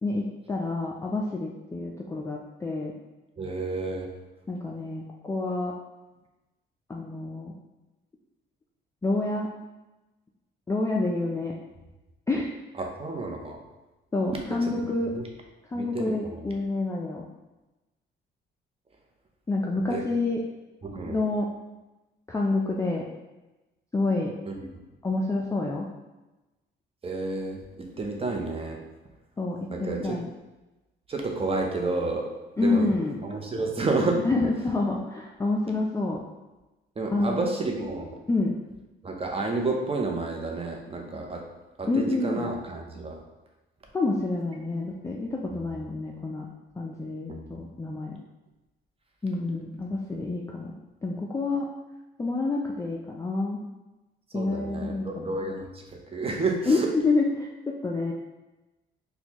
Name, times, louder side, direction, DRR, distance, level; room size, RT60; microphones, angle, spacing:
voice 1, 0.0-2.9 4.5-5.7 6.9-7.5 9.0-9.5 10.7-11.5 12.3-12.5 14.1-15.1 15.7-17.2 19.5-20.4 21.1-21.5 22.3-23.0 23.9-24.3 25.0-25.9 29.4-30.3 32.6-33.2 34.2-36.2 37.1-37.4 38.3-38.5 41.9-42.5 43.9-46.5 46.8-48.2 49.2-50.7 51.0-51.7 52.2-53.6 54.3-55.3 56.7-58.1, left 2 dB, 15° left, -2 dB, 0.4 m, -28 dB
voice 2, 3.4-4.1 12.8-13.6 14.5-14.7 15.1-15.2 15.7-16.4 19.9-20.0 20.8-21.2 24.4-24.7 27.0-28.8 29.7-30.2 31.1-32.3 32.6-32.9 33.2-34.2 37.0-38.2 39.0-41.5 41.8-43.2 47.3-47.4 54.3-55.7 56.1-56.9, right 3 dB, 30° right, 2 dB, 0.6 m, -30 dB
4.3 x 2.2 x 2.8 m, 1.1 s
cardioid pair, 90°, 20 cm